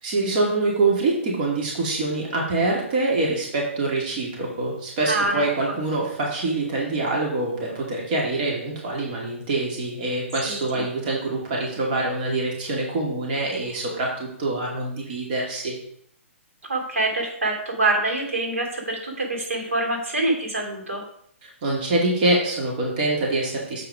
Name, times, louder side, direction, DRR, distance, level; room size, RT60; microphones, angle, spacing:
voice 1, 0.0-15.8 21.4-23.8, right 2 dB, 40° right, -2 dB, 2.5 m, -25 dB
voice 2, 5.1-5.4 10.4-10.8 16.7-21.0, right 2 dB, 85° right, 0 dB, 2.9 m, -25 dB
7.7 x 4.9 x 4.8 m, 0.67 s
hypercardioid pair, 150°, 7 cm